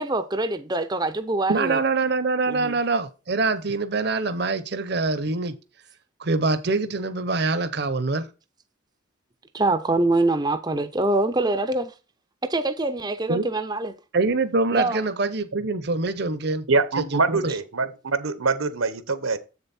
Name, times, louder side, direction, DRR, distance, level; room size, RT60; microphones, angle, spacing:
voice 1, 0.0-1.8 2.5-2.8 9.5-11.9 12.4-14.0 14.7-15.0, right 2 dB, 20° right, 0.5 m, -24 dB
voice 2, 1.5-5.5 6.2-8.3 13.3-13.5 14.1-16.7 17.0-17.5, right 3 dB, 50° right, 0.7 m, -24 dB
voice 3, 16.7-19.4, right 3 dB, 90° right, 1.1 m, -24 dB
7.8 x 6.8 x 4.2 m
head